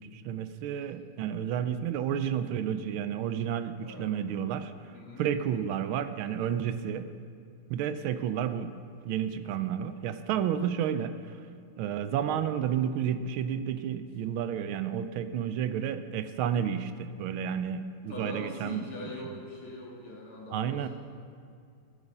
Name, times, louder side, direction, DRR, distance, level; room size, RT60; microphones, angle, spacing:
voice 1, 0.0-4.7 5.2-7.1 7.7-8.7 9.0-11.1 11.8-18.8 20.5-20.9, right 9 dB, 80° right, 11 dB, 1.4 m, -31 dB
voice 2, 3.7-4.2 4.8-5.3 7.9-8.3 18.1-20.9, left 2 dB, 80° left, -2 dB, 3.1 m, -43 dB
13.5 x 9.6 x 5.4 m, 2.3 s
omnidirectional pair, 2.3 m